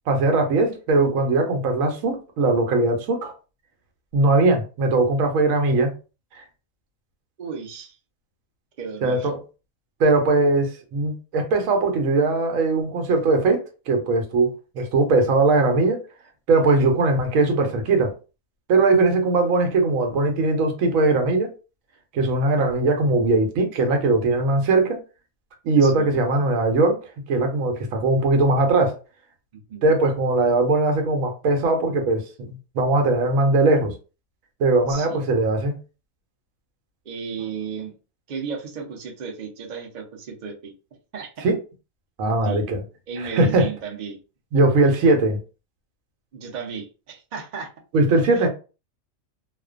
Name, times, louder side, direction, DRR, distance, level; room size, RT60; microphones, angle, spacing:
voice 1, 0.1-3.3 4.1-5.9 6.4-6.5 9.0-9.4 10.0-16.0 16.5-18.1 18.7-21.5 22.1-25.0 25.6-27.0 27.3-29.0 29.8-33.9 34.6-35.8 41.4-41.6 42.2-42.8 43.2-43.7 44.5-45.4 47.9-48.5, right 2 dB, 80° right, 1.0 m, -20 dB
voice 2, 7.4-8.0 8.8-9.3 25.8-26.2 29.5-29.9 34.9-35.2 37.1-37.9 38.3-40.7 41.1-41.3 42.4-42.6 43.1-44.2 46.3-47.7, right 6 dB, 50° right, 0.5 m, -34 dB
2.4 x 2.1 x 2.4 m
omnidirectional pair, 1.4 m